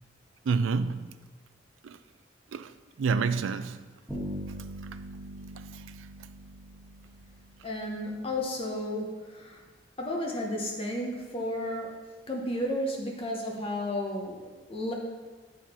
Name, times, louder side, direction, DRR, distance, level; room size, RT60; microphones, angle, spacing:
voice 1, 0.5-1.2 1.8-2.0 2.5-2.7 3.0-3.8 5.7-5.8, right 5 dB, 90° right, 0.4 m, -28 dB
Bass guitar, 4.1-7.9, right 1 dB, 5° right, 1.8 m, -41 dB
voice 2, 7.6-9.6 10.0-12.0 12.3-14.9, left 1 dB, 30° left, 0.8 m, -33 dB
9.2 x 4.3 x 4.2 m
head